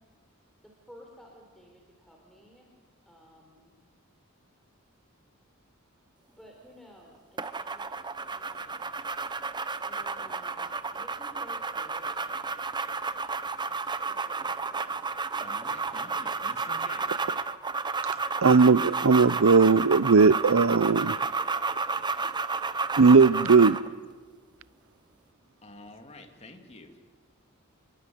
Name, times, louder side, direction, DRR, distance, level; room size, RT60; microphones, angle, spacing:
voice 1, 0.6-2.7 3.1-3.7 6.3-8.7 9.8-12.4 14.1-15.0, equal, ahead, 3.9 m, -54 dB
sound 1, 7.4-23.9, right 4 dB, 20° right, 0.8 m, -32 dB
voice 2, 15.4-17.2 25.6-27.1, left 2 dB, 30° left, 2.6 m, -48 dB
voice 3, 18.4-21.2 23.0-23.8, right 4 dB, 70° right, 0.7 m, -18 dB
28.5 x 22.0 x 7.9 m
head